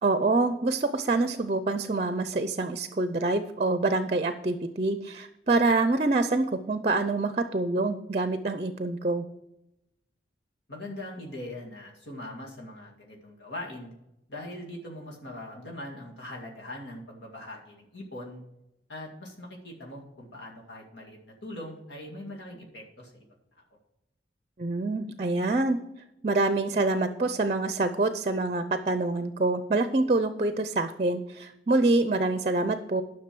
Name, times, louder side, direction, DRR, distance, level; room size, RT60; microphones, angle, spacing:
voice 1, 0.0-9.3 24.6-25.8 26.2-33.0, right 2 dB, 35° right, 10 dB, 0.5 m, -26 dB
voice 2, 10.7-13.9 14.3-18.4 18.9-23.3 23.6-23.7, left 1 dB, 90° left, -1 dB, 2.2 m, -41 dB
10.5 x 6.1 x 6.1 m, 0.88 s
head